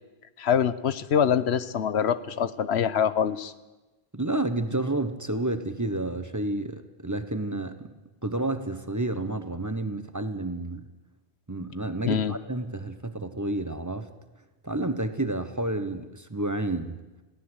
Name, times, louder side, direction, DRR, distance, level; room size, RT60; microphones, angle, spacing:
voice 1, 0.4-3.5 12.1-12.4, left 8 dB, 90° left, 15 dB, 1.2 m, -24 dB
voice 2, 4.1-7.9 8.2-10.9 11.5-14.1 14.6-17.0, right 2 dB, 20° right, 10 dB, 1.1 m, -30 dB
21.0 x 16.5 x 8.1 m, 1.1 s
omnidirectional pair, 1.1 m